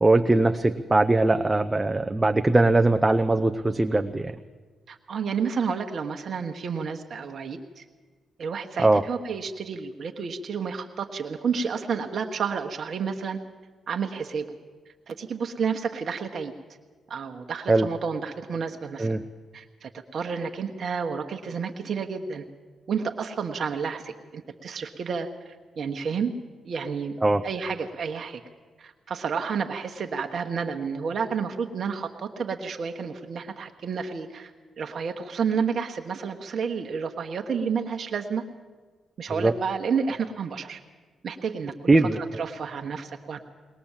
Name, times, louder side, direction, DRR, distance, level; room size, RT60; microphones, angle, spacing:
voice 1, 0.0-4.4 8.8-9.0 17.7-17.9 19.0-19.2 27.2-27.4 39.3-39.5 41.9-42.2, right 2 dB, 25° right, 7 dB, 0.8 m, -21 dB
voice 2, 4.9-7.8 8.4-13.4 13.9-14.5 15.1-16.5 17.1-19.2 19.5-22.4 22.9-26.3 26.6-27.2 27.4-28.4 28.8-34.5 34.8-38.4 39.2-40.8 41.2-42.1 42.4-43.4, right 6 dB, 60° right, 4 dB, 1.2 m, -30 dB
21.0 x 20.0 x 7.3 m, 1.4 s
supercardioid pair, 50°, 0 cm